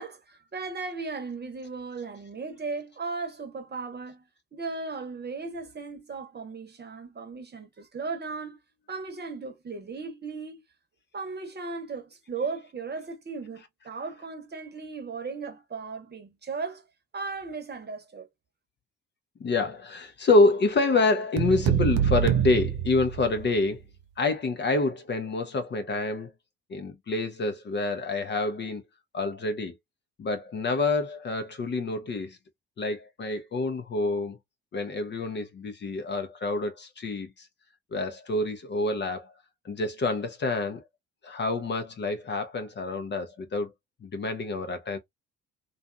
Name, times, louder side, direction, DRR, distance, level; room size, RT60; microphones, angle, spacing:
voice 1, 0.0-8.6 8.9-10.6 11.1-16.9 17.1-18.3, right 4 dB, 30° right, 1.0 m, -36 dB
voice 2, 19.4-23.8 24.2-26.3 26.7-28.8 29.1-29.7 30.2-32.4 32.8-34.4 34.7-37.5 37.9-39.3 39.6-40.8 41.2-43.7 44.0-45.0, left 3 dB, 35° left, 0.6 m, -27 dB
sound 1, 21.4-23.6, right 10 dB, 50° right, 0.5 m, -25 dB
2.6 x 2.4 x 2.2 m
hypercardioid pair, 55°, 33 cm